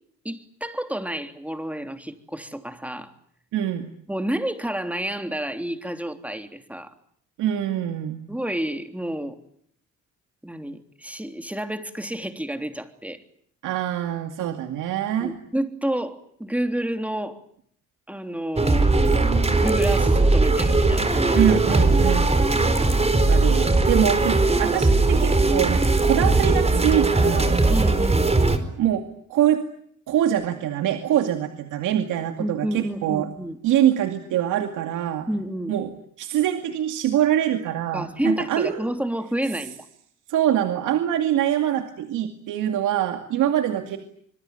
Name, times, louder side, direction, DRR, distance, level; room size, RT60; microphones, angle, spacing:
voice 1, 0.2-3.1 4.1-6.9 8.3-9.4 10.4-13.2 15.2-17.4 18.1-18.9 19.5-21.5 27.7-28.3 32.4-33.6 35.3-35.8 37.9-39.9, right 1 dB, 5° right, 7 dB, 3.3 m, -30 dB
voice 2, 3.5-3.9 7.4-8.2 13.6-15.3 21.3-22.3 23.1-27.5 28.8-29.0 29.3-29.6 30.1-33.3 33.6-35.3 35.7-35.9 36.2-38.8 40.3-44.0, right 11 dB, 85° right, 6 dB, 2.4 m, -24 dB
sound 1, 18.6-28.6, right 3 dB, 20° right, 4.6 m, -19 dB
26.0 x 22.5 x 9.4 m, 0.68 s
cardioid pair, 90°, 30 cm